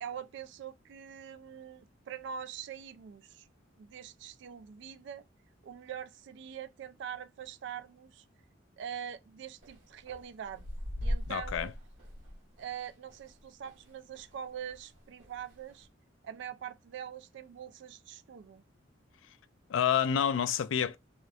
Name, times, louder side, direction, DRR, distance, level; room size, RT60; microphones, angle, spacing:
voice 1, 0.0-3.5 3.8-5.3 5.6-8.2 8.8-10.6 11.0-11.7 12.6-15.9 16.2-18.6, right 8 dB, 65° right, 0.3 m, -43 dB
Walking up stairs, 9.6-14.4 14.7-15.9, equal, 80° right, 1.3 m, -40 dB
voice 2, 11.3-11.7 19.7-21.0, left 8 dB, 80° left, 0.3 m, -28 dB
2.8 x 2.1 x 2.3 m
head